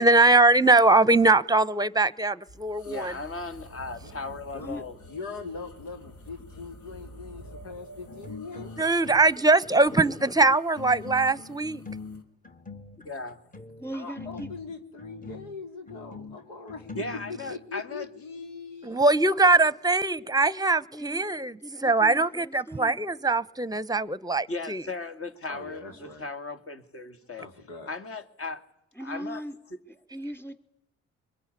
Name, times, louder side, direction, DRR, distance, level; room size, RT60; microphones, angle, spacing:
voice 1, 0.0-3.1 8.8-11.8 18.8-24.8, right 3 dB, 10° right, 1.1 m, -22 dB
sound 1, 2.4-12.2, equal, 60° left, 3.3 m, -49 dB
voice 2, 2.8-5.0 13.0-13.4 17.0-18.1 24.5-27.5 27.9-28.6 29.0-29.4, left 3 dB, 40° left, 2.5 m, -37 dB
voice 3, 4.0-8.7 13.9-17.0 17.3-19.1 25.5-26.3 27.4-27.9, left 4 dB, 80° left, 3.2 m, -41 dB
sound 2, 8.1-9.4 9.6-17.7, left 3 dB, 25° left, 2.0 m, -43 dB
voice 4, 9.7-10.0 13.8-14.5 15.2-15.4 20.9-21.3 21.6-23.1 25.9-26.2 28.9-29.6 29.9-30.5, equal, 5° left, 3.2 m, -40 dB
23.5 x 22.0 x 9.8 m
hypercardioid pair, 50°, 34 cm